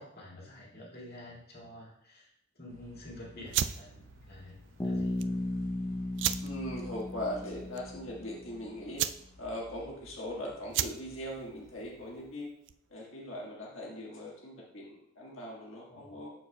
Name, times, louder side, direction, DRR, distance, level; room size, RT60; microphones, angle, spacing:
voice 1, 0.0-2.3 2.6-4.6 4.8-5.2 15.9-16.2, left 1 dB, 50° left, -4 dB, 2.0 m, -48 dB
sound 1, 2.7-12.3, equal, 85° right, 1.8 m, -56 dB
sound 2, 3.5-13.0, right 11 dB, 60° right, 0.3 m, -37 dB
Bass guitar, 4.8-8.5, left 1 dB, 10° left, 0.5 m, -35 dB
voice 2, 6.4-9.0 9.4-12.5 12.9-16.3, left 1 dB, 80° left, -3 dB, 1.5 m, -40 dB
12.0 x 4.6 x 2.2 m, 0.74 s
head